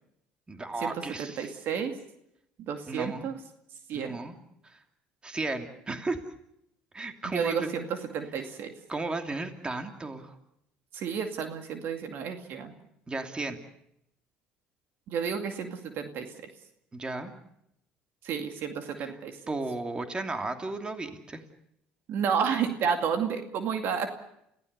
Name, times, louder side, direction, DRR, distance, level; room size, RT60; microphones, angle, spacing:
voice 1, 0.5-1.5 2.9-3.2 3.9-4.4 4.6-4.8 5.2-6.2 6.9-7.7 8.9-10.4 13.1-13.6 16.9-17.3 19.0-19.1 19.5-21.4, right 2 dB, 25° right, 6 dB, 2.8 m, -34 dB
voice 2, 1.2-2.0 2.7-3.3 3.9-4.2 7.3-7.8 8.1-8.7 10.9-12.7 15.1-16.3 18.2-19.4 22.1-24.1, right 7 dB, 65° right, 6 dB, 2.3 m, -31 dB
29.5 x 16.0 x 6.8 m, 0.77 s
supercardioid pair, 75°, 4 cm